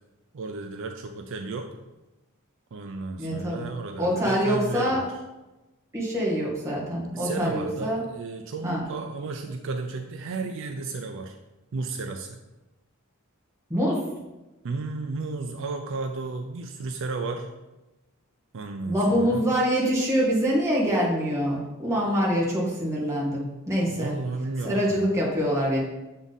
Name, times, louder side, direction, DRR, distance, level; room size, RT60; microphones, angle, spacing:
voice 1, 0.3-1.7 2.7-5.1 7.1-11.4 11.7-12.4 14.6-17.5 18.5-19.5 23.9-25.0, right 3 dB, 65° right, 5 dB, 0.4 m, -33 dB
voice 2, 3.2-3.7 4.0-5.0 5.9-8.0 8.6-8.8 13.7-14.0 18.9-24.1 24.6-25.8, equal, 15° right, -6 dB, 1.7 m, -25 dB
7.1 x 3.8 x 4.0 m, 1.0 s
head